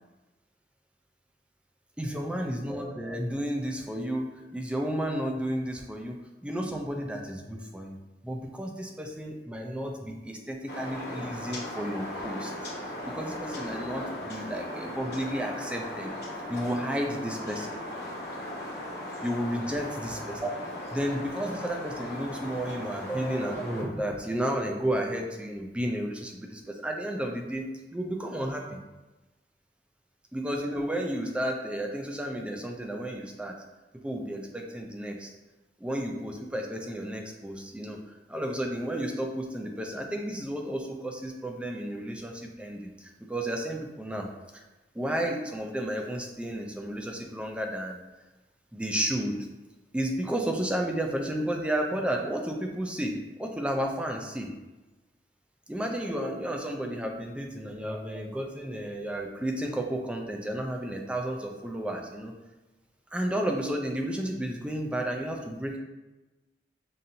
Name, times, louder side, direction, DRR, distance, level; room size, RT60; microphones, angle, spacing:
voice 1, 2.0-8.0 8.2-12.5 13.1-16.1 16.5-17.6 19.2-19.9 20.4-20.5 20.9-27.7 27.9-28.8 30.3-33.6 34.0-35.3 35.8-38.0 38.3-44.6 44.9-48.0 48.7-49.5 49.9-54.5 55.7-62.3 63.1-65.8, right 1 dB, 5° right, 2 dB, 0.4 m, -32 dB
sound 1, 10.7-23.8, left 1 dB, 60° left, 1.2 m, -38 dB
5.5 x 2.6 x 2.6 m, 1.1 s
head